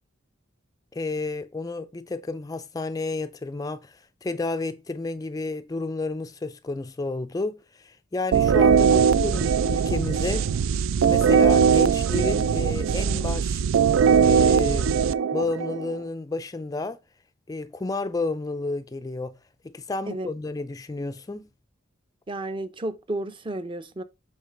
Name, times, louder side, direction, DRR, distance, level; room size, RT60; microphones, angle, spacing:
voice 1, 0.9-10.5 11.1-13.6 14.2-14.9 15.3-17.0 17.5-19.4 19.6-21.5, left 3 dB, 20° left, 0.4 m, -31 dB
sound 1, 8.3-16.0, right 6 dB, 80° right, 0.4 m, -20 dB
voice 2, 22.3-24.0, right 1 dB, 25° right, 0.6 m, -32 dB
8.1 x 3.3 x 5.7 m
head